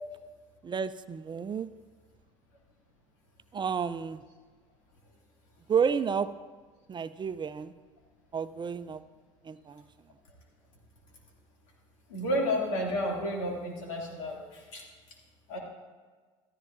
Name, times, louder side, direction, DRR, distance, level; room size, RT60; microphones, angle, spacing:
voice 1, 0.6-1.7 3.5-4.2 5.7-6.3 6.9-7.7 8.3-9.0 9.4-9.8, right 6 dB, 30° right, 12 dB, 0.5 m, -31 dB
voice 2, 12.1-14.9 15.5-15.6, equal, 85° left, -1 dB, 2.6 m, -31 dB
14.0 x 13.5 x 2.6 m, 1.4 s
hypercardioid pair, 75°, 16 cm